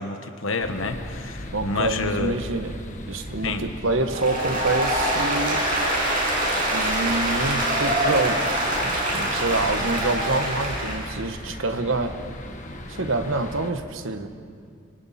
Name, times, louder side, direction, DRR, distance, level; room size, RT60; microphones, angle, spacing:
voice 1, 0.0-2.4 3.4-3.6, left 3 dB, 80° left, 7 dB, 1.4 m, -28 dB
sound 1, 0.6-13.7, left 1 dB, 40° left, 1.4 m, -38 dB
voice 2, 1.5-2.7 3.1-5.6 6.7-12.2 12.9-14.3, right 2 dB, 80° right, 8 dB, 1.2 m, -27 dB
Applause, 4.0-11.1, right 1 dB, 45° right, 6.5 m, -24 dB
26.0 x 25.0 x 4.3 m, 2.3 s
head